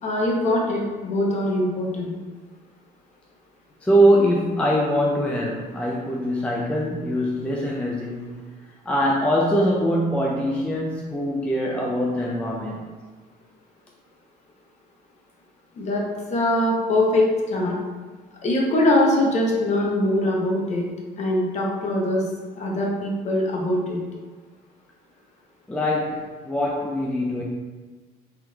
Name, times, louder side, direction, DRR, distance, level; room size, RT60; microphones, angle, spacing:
voice 1, 0.0-2.2 15.8-16.0 16.3-17.7 18.4-20.8 21.2-22.3 22.5-24.0, left 1 dB, 45° left, -2 dB, 0.8 m, -22 dB
voice 2, 3.8-8.4 8.9-12.9 25.7-27.4, equal, 5° left, -3 dB, 0.4 m, -23 dB
3.6 x 2.9 x 2.3 m, 1.4 s
cardioid pair, 110°, 17 cm